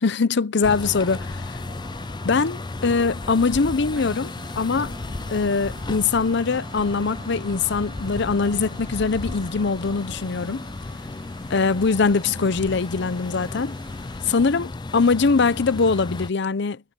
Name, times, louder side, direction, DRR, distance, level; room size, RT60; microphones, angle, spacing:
voice 1, 0.0-1.4 2.2-4.9 5.3-10.6 11.5-13.7 14.3-16.8, left 4 dB, 60° left, 0.7 m, -22 dB
sound 1, 0.5-9.7, right 3 dB, 30° right, 2.8 m, -47 dB
sound 2, 0.6-16.3, left 2 dB, 20° left, 0.4 m, -34 dB
sound 3, 4.0-14.2, right 2 dB, 70° right, 2.3 m, -47 dB
head